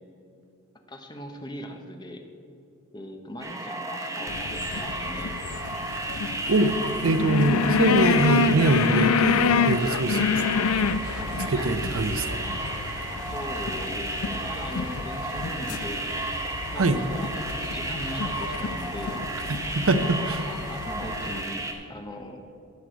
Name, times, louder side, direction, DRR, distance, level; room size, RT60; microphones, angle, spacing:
voice 1, 0.9-2.2 2.9-5.4 13.3-16.0 16.7-19.2 20.0-20.1 20.5-22.4, equal, 20° left, 4 dB, 0.8 m, -39 dB
sound 1, 3.4-21.7, right 2 dB, 15° right, 0.8 m, -33 dB
sound 2, 4.3-21.4, left 5 dB, 75° left, 0.4 m, -28 dB
voice 2, 6.5-10.3 11.5-12.4 16.7-17.0 19.5-20.4, right 2 dB, 65° right, 10 dB, 0.6 m, -23 dB
sound 3, 10.7-21.6, left 1 dB, 55° left, 1.0 m, -42 dB
11.5 x 4.8 x 7.9 m, 2.6 s
head